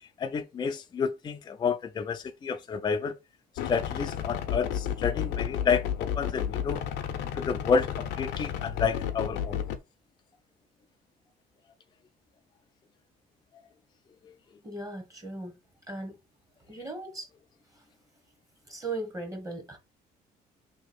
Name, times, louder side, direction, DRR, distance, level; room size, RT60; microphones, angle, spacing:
voice 1, 0.2-3.2 3.7-6.8 7.3-9.6, left 5 dB, 25° left, 0.4 m, -30 dB
sound 1, 3.6-9.8, left 9 dB, 85° left, 0.7 m, -32 dB
voice 2, 14.6-15.5 15.9-16.2 16.7-17.3 18.7-19.8, right 2 dB, 20° right, 1.1 m, -37 dB
3.0 x 2.8 x 4.2 m
cardioid pair, 110°, 17 cm